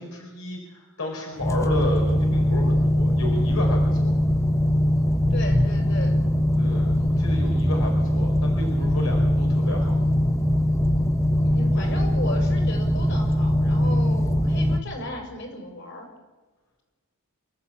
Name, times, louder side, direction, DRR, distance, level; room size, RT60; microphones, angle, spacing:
voice 1, 0.0-4.1 6.6-9.9 11.7-11.9, left 1 dB, 80° left, 1 dB, 4.3 m, -33 dB
sound 1, 1.4-14.8, equal, 15° left, 1.1 m, -21 dB
voice 2, 5.3-6.1 7.0-7.1 11.4-16.1, left 1 dB, 60° left, 3 dB, 6.1 m, -36 dB
27.5 x 14.0 x 8.5 m, 1.3 s
head